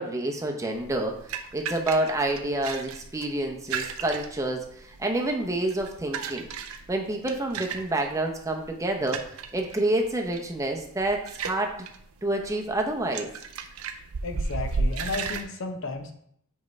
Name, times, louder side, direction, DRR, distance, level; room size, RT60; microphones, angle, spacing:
voice 1, 0.0-6.5 6.9-9.2 9.5-11.7 12.2-13.3, right 1 dB, 15° right, 2 dB, 0.7 m, -28 dB
sound 1, 0.7-15.4, right 4 dB, 75° right, 0.6 m, -35 dB
voice 2, 14.2-16.1, left 3 dB, 60° left, 6 dB, 0.7 m, -33 dB
7.5 x 4.6 x 3.2 m, 0.69 s
head